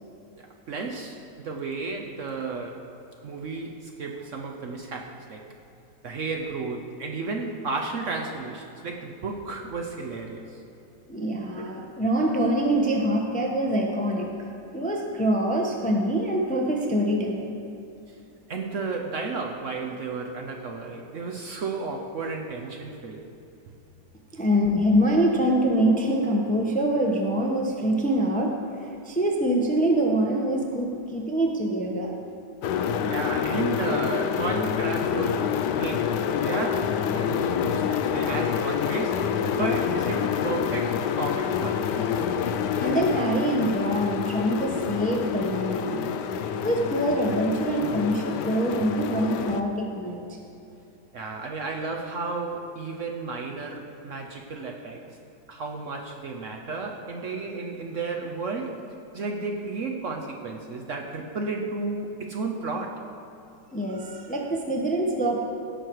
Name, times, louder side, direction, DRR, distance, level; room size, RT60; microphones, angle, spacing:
voice 1, 0.4-2.8 3.2-5.4 6.0-10.6 18.5-23.2 32.7-39.3 39.6-42.2 51.1-55.0 55.5-58.8 59.1-63.0, right 3 dB, 55° right, 2 dB, 0.9 m, -33 dB
voice 2, 11.1-14.3 14.7-17.6 24.3-32.1 42.8-46.0 46.6-50.4 63.7-65.4, right 1 dB, 10° left, 0 dB, 0.6 m, -25 dB
sound 1, 32.6-49.6, left 7 dB, 80° left, 1.2 m, -27 dB
16.5 x 6.4 x 4.6 m, 2.6 s
omnidirectional pair, 1.8 m